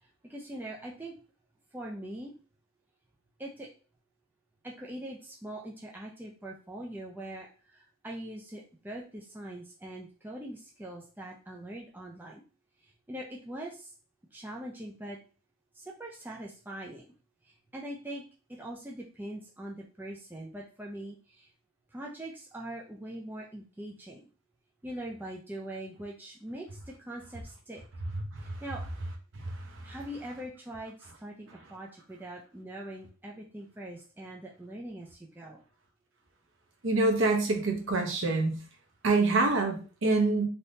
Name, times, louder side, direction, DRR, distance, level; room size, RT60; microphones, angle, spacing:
voice 1, 0.0-1.2 1.7-2.3 3.4-3.7 4.6-12.4 12.8-13.9 14.3-15.2 15.7-17.1 17.4-18.2 18.5-21.5 21.9-24.2 24.8-27.8 28.4-28.9 29.8-35.6, right 1 dB, 10° right, -1 dB, 0.3 m, -42 dB
voice 2, 36.8-38.6 39.0-40.5, right 3 dB, 55° right, 3 dB, 0.7 m, -26 dB
3.4 x 2.7 x 2.7 m, 0.37 s
head